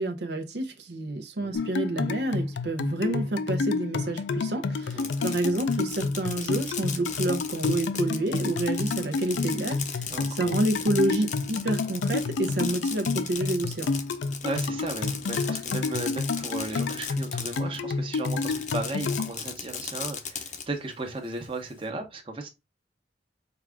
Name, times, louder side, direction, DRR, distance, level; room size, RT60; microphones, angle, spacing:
voice 1, 0.0-13.9, right 1 dB, 70° right, 0.6 m, -29 dB
sound 1, 1.5-19.3, left 4 dB, 85° left, 0.4 m, -30 dB
Fireworks, 4.8-17.8 18.1-20.6, left 7 dB, 40° left, 0.6 m, -37 dB
voice 2, 4.9-5.3 10.1-10.6 14.4-22.5, right 2 dB, 30° right, 0.9 m, -35 dB
4.7 x 2.4 x 3.4 m
head